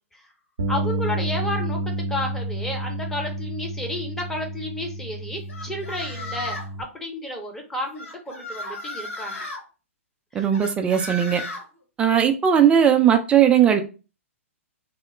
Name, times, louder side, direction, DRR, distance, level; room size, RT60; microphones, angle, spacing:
Bass guitar, 0.6-6.8, right 1 dB, 70° right, 0.5 m, -30 dB
voice 1, 0.7-9.4 10.3-10.5, left 1 dB, 5° left, 0.7 m, -32 dB
sound 1, 5.5-6.8 8.0-9.6 10.5-11.6, left 1 dB, 75° left, 1.6 m, -34 dB
voice 2, 10.3-11.4 12.0-13.8, right 9 dB, 15° right, 0.3 m, -18 dB
3.0 x 2.1 x 3.6 m
figure-of-eight pair, 115°, 8 cm